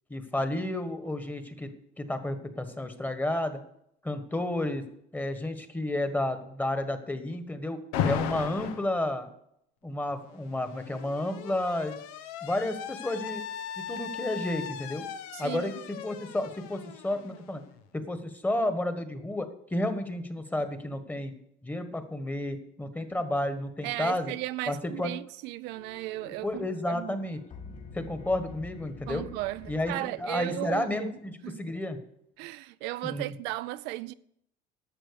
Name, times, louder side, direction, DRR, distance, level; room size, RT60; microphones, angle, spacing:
voice 1, 0.1-1.7 2.0-3.6 4.0-4.8 5.1-9.3 9.8-12.0 12.4-13.4 13.8-15.0 15.4-17.6 17.9-21.3 21.6-24.3 24.7-25.1 26.1-27.4 27.9-29.3 29.7-32.0 33.0-33.3, left 1 dB, 10° left, 1.5 m, -31 dB
Alarm, 7.9-8.9 10.1-17.8, left 8 dB, 85° left, 1.0 m, -37 dB
voice 2, 15.3-15.7 23.8-27.3 29.1-31.1 31.4-31.7 32.4-34.1, right 17 dB, 70° right, 0.5 m, -36 dB
sound 1, 25.7-31.1, left 4 dB, 45° left, 3.2 m, -48 dB
12.0 x 7.4 x 6.9 m
cardioid pair, 120°, 18 cm